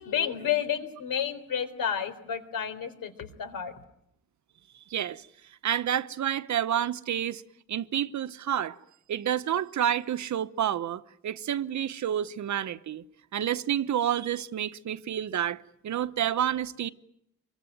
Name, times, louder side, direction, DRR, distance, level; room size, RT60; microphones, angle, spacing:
voice 1, 0.0-3.7, left 9 dB, 75° left, 3.9 m, -31 dB
voice 2, 4.9-5.3 5.6-7.4 7.7-8.8 9.1-13.0 13.3-16.9, right 10 dB, 55° right, 1.0 m, -29 dB
26.0 x 23.5 x 9.1 m
cardioid pair, 140°, 34 cm